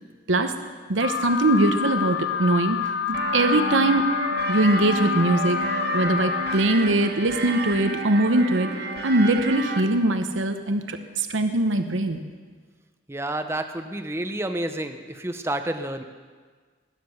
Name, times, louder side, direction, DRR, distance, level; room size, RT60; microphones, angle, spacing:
voice 1, 0.9-2.8 3.1-4.1 4.5-5.6 5.9-8.7 9.0-12.2, right 2 dB, 85° right, 7 dB, 1.0 m, -22 dB
Alarm, 1.0-6.6, left 7 dB, 75° left, 0.7 m, -28 dB
sound 1, 3.1-9.8, right 3 dB, 55° right, 1.3 m, -30 dB
voice 2, 13.1-16.0, right 1 dB, 15° right, 7 dB, 0.7 m, -29 dB
20.0 x 9.9 x 6.4 m, 1.5 s
head